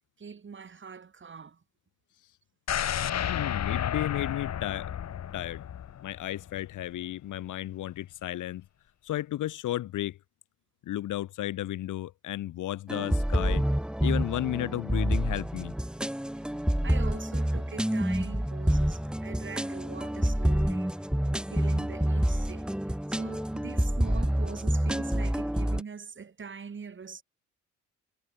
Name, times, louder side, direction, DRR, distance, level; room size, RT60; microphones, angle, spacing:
voice 1, 0.2-1.6 16.8-21.1 21.5-27.2, right 6 dB, 40° right, 7.1 m, -43 dB
sound 1, 2.7-6.7 7.0-7.1, left 10 dB, 60° left, 3.1 m, -32 dB
voice 2, 3.3-4.9 5.3-5.6 6.0-8.6 9.0-10.2 10.8-13.7 14.0-15.7, left 13 dB, 80° left, 6.3 m, -33 dB
sound 2, 12.9-25.8, equal, 5° right, 3.4 m, -28 dB
cardioid pair, 90°, 30 cm